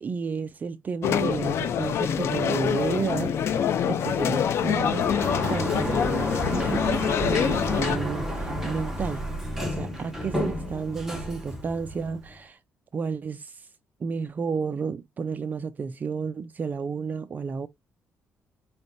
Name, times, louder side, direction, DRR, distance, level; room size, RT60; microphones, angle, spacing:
voice 1, 0.0-9.2 9.7-12.6 12.9-13.7 14.0-17.7, right 5 dB, 35° right, 0.4 m, -32 dB
sound 1, 1.0-8.0, left 8 dB, 60° left, 0.6 m, -25 dB
Sliding door, 4.6-12.4, equal, 5° right, 1.6 m, -31 dB
4.9 x 3.3 x 2.6 m
cardioid pair, 115°, 5 cm